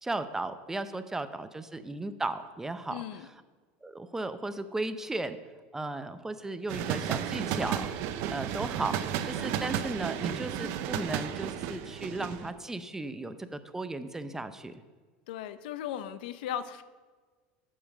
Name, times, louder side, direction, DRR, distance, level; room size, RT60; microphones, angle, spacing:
voice 1, 0.0-3.0 3.8-5.4 5.7-7.9 8.3-14.8, right 2 dB, 10° right, 10 dB, 0.6 m, -35 dB
voice 2, 2.9-3.3 15.3-16.8, left 10 dB, 80° left, 13 dB, 0.6 m, -37 dB
sound 1, 6.7-12.5, right 9 dB, 60° right, 0.8 m, -33 dB
8.7 x 6.9 x 6.5 m, 1.4 s
supercardioid pair, 125°, 5 cm